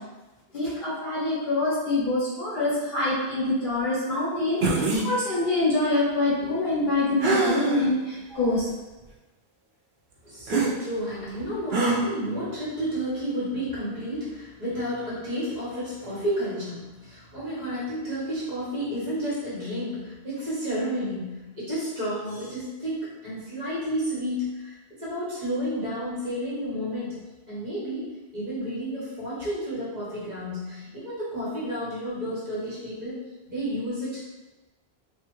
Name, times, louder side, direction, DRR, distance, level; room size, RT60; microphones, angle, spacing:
voice 1, 0.5-8.7, left 2 dB, 55° left, -9 dB, 1.3 m, -25 dB
sound 1, 4.6-5.1 7.2-7.9 8.5-8.6 10.5-10.7 11.7-12.0, right 3 dB, 75° right, 0.8 m, -23 dB
voice 2, 10.2-33.2 33.5-34.3, equal, 45° right, -10 dB, 1.3 m, -31 dB
2.8 x 2.4 x 3.0 m, 1.1 s
omnidirectional pair, 1.1 m